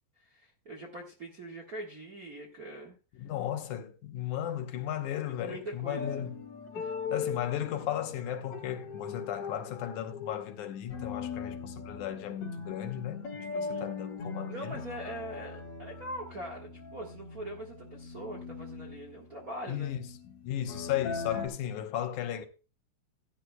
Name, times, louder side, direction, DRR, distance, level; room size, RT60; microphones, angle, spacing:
voice 1, 0.2-2.9 5.4-6.3 6.7-6.9 13.5-13.9 14.5-19.9, right 1 dB, 40° right, 1.2 m, -42 dB
voice 2, 3.2-6.4 7.1-14.8 19.7-20.0 20.4-22.5, left 11 dB, 70° left, 2.3 m, -35 dB
sound 1, 5.9-21.5, left 5 dB, 55° left, 3.7 m, -40 dB
15.5 x 9.9 x 2.2 m
omnidirectional pair, 3.9 m